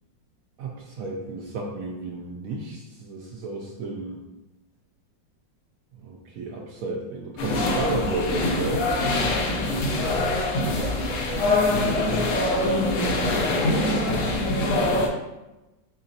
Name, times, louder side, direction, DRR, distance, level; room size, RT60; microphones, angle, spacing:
voice 1, 0.6-4.2 6.0-8.9, right 3 dB, 80° right, -1 dB, 0.7 m, -32 dB
sound 1, 7.4-15.1, left 2 dB, 70° left, 0.7 m, -24 dB
voice 2, 9.9-10.2 10.7-12.2 12.5-13.2 13.5-15.1, right 2 dB, 40° right, -8 dB, 0.8 m, -38 dB
4.2 x 3.9 x 2.7 m, 1.0 s
omnidirectional pair, 2.0 m